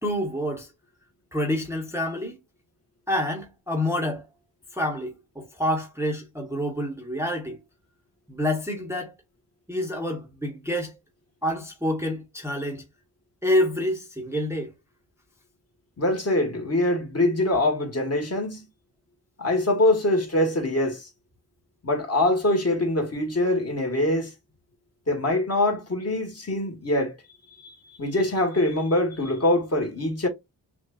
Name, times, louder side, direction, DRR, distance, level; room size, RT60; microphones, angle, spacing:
voice 1, 0.0-0.7 1.3-2.4 3.1-4.2 4.7-7.6 8.3-9.1 9.7-11.0 11.4-12.8 13.4-14.7, left 1 dB, 5° right, 0.9 m, -27 dB
voice 2, 16.0-18.7 19.4-21.1 21.8-24.3 25.1-27.2 27.6-30.3, left 1 dB, 35° left, 1.3 m, -24 dB
5.9 x 2.3 x 2.2 m
wide cardioid pair, 175°, 45 cm